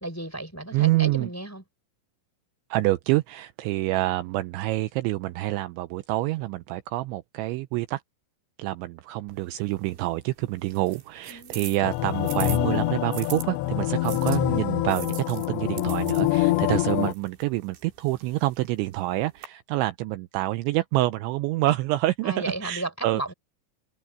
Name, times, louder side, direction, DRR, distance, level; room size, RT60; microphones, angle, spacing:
voice 1, 0.0-1.6 11.3-11.8 22.2-23.3, right 2 dB, 5° left, 3.7 m, -34 dB
voice 2, 0.7-1.3 2.7-8.0 8.6-23.2, right 17 dB, 80° right, 2.8 m, -27 dB
sound 1, 9.3-13.5 14.0-19.5, right 9 dB, 65° right, 5.0 m, -43 dB
sound 2, 11.8-17.1, left 18 dB, 80° left, 2.6 m, -25 dB
open air
omnidirectional pair, 5.7 m